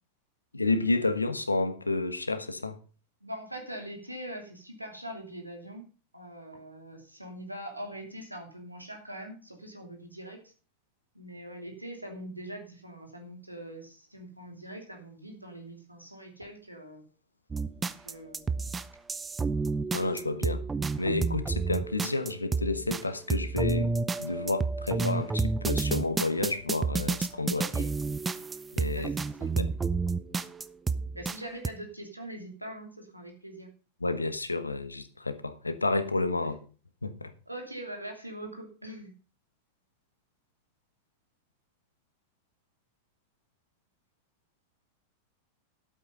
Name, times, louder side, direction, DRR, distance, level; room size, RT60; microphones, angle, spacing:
voice 1, 0.5-2.8 19.9-20.6 21.0-23.9 24.2-27.6 28.7-29.1 29.5-29.7 34.0-36.6 37.0-37.3, left 3 dB, 80° left, 1.2 m, -30 dB
voice 2, 3.2-5.8 6.1-10.4 11.1-17.0 17.8-18.6 27.5-27.9 28.9-29.5 31.1-33.7 37.5-39.1, right 1 dB, 85° right, 2.9 m, -42 dB
sound 1, 17.5-31.4 31.6-31.7, right 4 dB, 15° right, 0.7 m, -30 dB
12.0 x 8.5 x 5.4 m
figure-of-eight pair, 90°, 0 cm